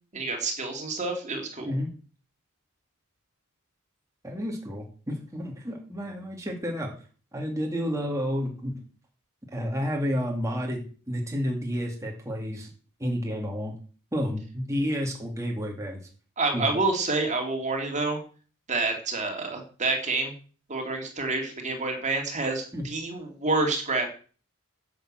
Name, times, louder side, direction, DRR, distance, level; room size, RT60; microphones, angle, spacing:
voice 1, 0.1-1.7 16.4-18.2 18.7-20.3 20.7-24.1, right 3 dB, 35° right, 3 dB, 2.7 m, -28 dB
voice 2, 1.6-1.9 4.2-6.9 7.3-8.7 9.5-12.7 13.0-13.7 14.1-16.0 16.5-16.7 22.7-22.8, equal, 15° right, 0 dB, 2.5 m, -30 dB
10.5 x 7.2 x 7.6 m, 0.40 s
head